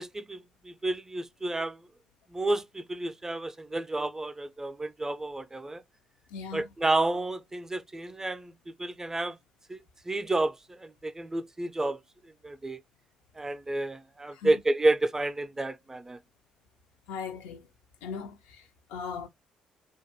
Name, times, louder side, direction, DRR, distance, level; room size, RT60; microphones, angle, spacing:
voice 1, 0.0-1.8 2.3-5.8 6.5-8.5 8.8-9.4 9.7-9.8 10.1-12.0 12.4-12.8 13.4-16.2, right 2 dB, 20° right, 0.4 m, -30 dB
voice 2, 6.3-6.7 14.3-14.5 17.1-17.7 18.0-18.6 18.9-19.3, left 5 dB, 80° left, 0.5 m, -38 dB
2.5 x 2.3 x 2.7 m
hypercardioid pair, 50°, 3 cm